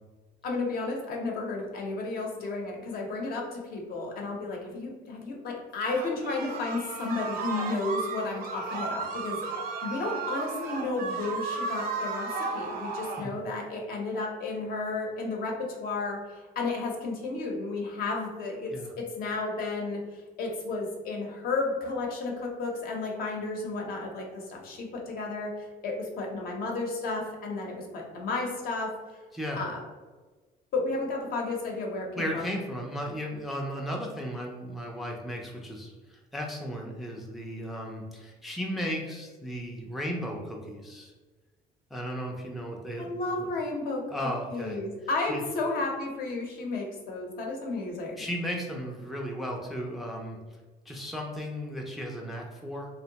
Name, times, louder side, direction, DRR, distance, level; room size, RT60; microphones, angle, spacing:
voice 1, 0.4-12.3 12.5-28.9 29.6-29.8 30.7-32.5 43.0-48.1, left 3 dB, 60° left, 0 dB, 0.7 m, -33 dB
sound 1, 5.9-13.3, right 4 dB, 60° right, 0.5 m, -34 dB
voice 2, 29.3-29.6 32.2-41.1 41.9-43.5 44.1-44.8 45.3-45.4 48.2-50.4 50.9-52.9, equal, ahead, 0 dB, 0.3 m, -35 dB
2.6 x 2.1 x 2.8 m, 1.3 s
cardioid pair, 110°, 17 cm